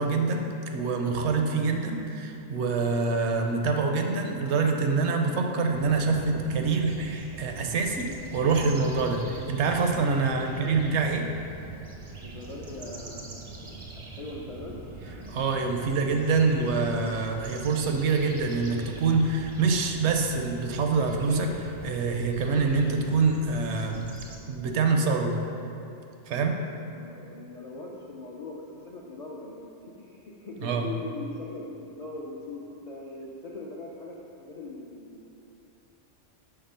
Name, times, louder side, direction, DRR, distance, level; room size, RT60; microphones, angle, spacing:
voice 1, 0.0-11.2 15.3-24.1 24.5-25.4 26.3-26.6 30.6-30.9, right 4 dB, 70° right, 3 dB, 0.8 m, -26 dB
sound 1, 5.7-24.4, right 4 dB, 40° right, 0.5 m, -43 dB
voice 2, 10.2-10.8 12.2-14.8 26.9-35.2, left 2 dB, 60° left, -4 dB, 0.4 m, -41 dB
5.8 x 3.3 x 5.5 m, 2.8 s
omnidirectional pair, 1.3 m